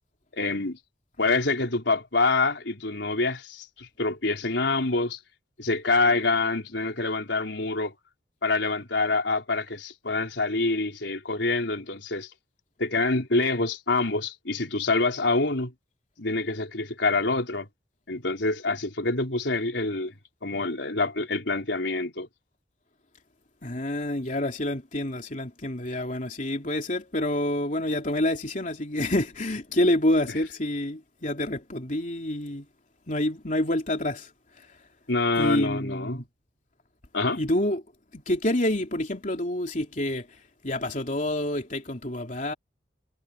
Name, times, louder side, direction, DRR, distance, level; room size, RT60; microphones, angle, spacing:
voice 1, 0.3-0.8 1.2-5.2 5.6-7.9 8.4-12.3 12.8-15.7 16.2-17.7 18.1-20.1 20.4-22.3 35.1-36.3 37.1-37.4, left 3 dB, 75° left, 4.1 m, -26 dB
voice 2, 23.6-32.7 33.1-34.3 35.4-36.2 37.4-37.8 38.1-40.3 40.6-42.5, left 1 dB, 45° left, 3.2 m, -27 dB
head